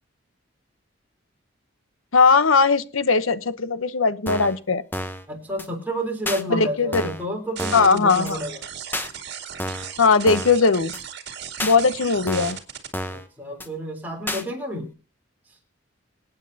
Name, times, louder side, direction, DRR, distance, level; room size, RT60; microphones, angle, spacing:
voice 1, 2.1-4.8 6.5-7.1 7.7-8.4 10.0-10.9 11.6-12.6, left 4 dB, 80° left, 14 dB, 0.9 m, -19 dB
sound 1, 4.3-4.6 4.9-5.2 5.6-5.7 6.3-6.4 6.9-7.3 7.6-7.9 8.3-8.4 8.9-9.1 9.6-9.9 10.3-10.6 10.9-11.0 11.6-11.8 12.3-12.6 12.9-13.3 13.6-13.7 14.3-14.4, left 1 dB, 10° left, 0.9 m, -30 dB
voice 2, 5.3-8.6 13.1-14.9, equal, 10° right, 0 dB, 3.7 m, -30 dB
sound 2, 7.6-12.9, right 8 dB, 55° right, 2.0 m, -36 dB
25.5 x 9.0 x 2.8 m, 0.33 s
head